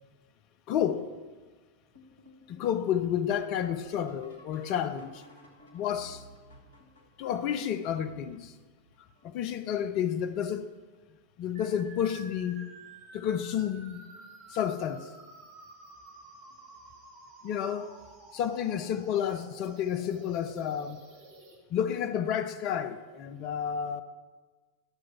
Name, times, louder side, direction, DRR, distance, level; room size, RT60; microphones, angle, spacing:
voice 1, 0.7-1.1 2.5-5.2 5.7-6.2 7.2-8.5 9.2-10.7 11.4-12.7 13.1-14.0 14.5-15.1 17.4-17.9 18.3-21.0 21.7-24.0, left 9 dB, 40° left, 0.6 m, -30 dB
sound 1, 1.9-9.6 10.3-10.8 11.3-11.9 13.2-13.3 14.0-14.3 16.5-16.6 18.9-19.0, left 1 dB, 65° left, 1.4 m, -56 dB
sound 2, 11.5-21.5, right 3 dB, 40° right, 1.8 m, -52 dB
11.5 x 6.2 x 4.4 m
figure-of-eight pair, 90°, 0 cm